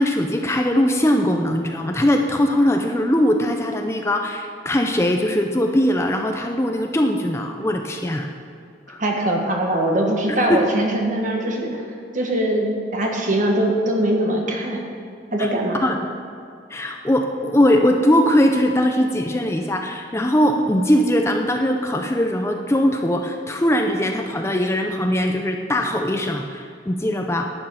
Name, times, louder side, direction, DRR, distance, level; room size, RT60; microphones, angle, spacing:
voice 1, 0.0-8.3 8.9-9.0 10.5-10.6 15.4-15.5 15.8-16.0 16.7-27.5, equal, 15° left, 3 dB, 0.6 m, -20 dB
voice 2, 9.0-11.8 12.1-14.9 15.3-15.9, right 1 dB, 45° right, 1 dB, 1.7 m, -22 dB
11.5 x 9.1 x 5.7 m, 2.4 s
head